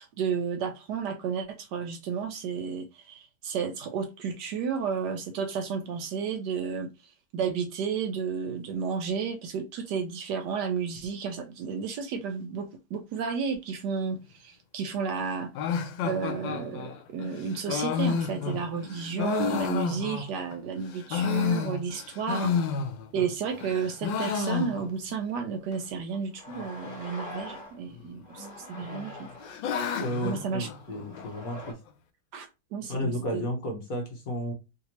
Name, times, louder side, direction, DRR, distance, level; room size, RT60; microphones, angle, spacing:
voice 1, 0.0-6.9 7.3-15.5 16.0-22.5 23.1-29.3 30.2-30.7 32.3-33.5, right 6 dB, 75° right, 1.0 m, -32 dB
sound 1, 15.5-20.5 20.9-23.3 23.6-25.2 25.4-25.5 25.7-25.8 26.5-26.9 27.9-28.5 28.9-31.3, left 6 dB, 80° left, 1.2 m, -31 dB
sound 2, 23.5-24.1 24.6-24.7 25.8-25.9 26.3-27.8 28.2-29.6 30.5-31.7, left 2 dB, 35° left, 1.2 m, -44 dB
voice 2, 29.9-31.8 32.8-34.5, equal, 60° left, 1.0 m, -33 dB
3.3 x 2.7 x 2.9 m
omnidirectional pair, 2.1 m